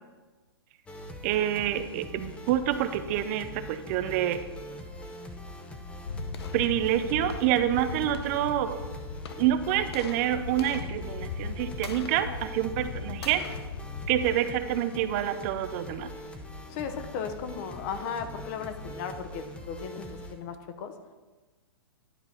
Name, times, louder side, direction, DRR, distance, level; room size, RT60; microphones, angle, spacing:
sound 1, 0.9-20.3, equal, 10° left, 0.7 m, -42 dB
voice 1, 1.2-4.4 6.5-8.8 9.4-13.4 14.1-16.1, right 11 dB, 35° right, 11 dB, 0.4 m, -27 dB
sound 2, 6.1-15.2, left 5 dB, 75° left, 0.7 m, -38 dB
voice 2, 16.7-20.9, left 6 dB, 40° left, 9 dB, 0.8 m, -36 dB
11.0 x 4.0 x 5.9 m, 1.3 s
hypercardioid pair, 145°, 13 cm